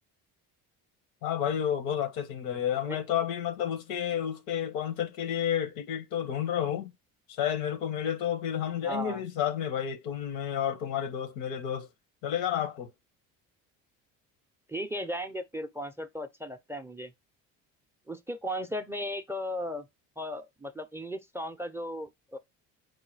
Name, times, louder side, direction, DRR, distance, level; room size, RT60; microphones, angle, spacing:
voice 1, 1.2-6.9 7.3-11.9 12.2-12.9, left 9 dB, 85° left, 1.0 m, -31 dB
voice 2, 8.8-9.2 14.7-17.1 18.1-19.9 20.2-22.4, equal, 5° right, 0.4 m, -36 dB
4.8 x 2.2 x 4.5 m
cardioid pair, 100°, 37 cm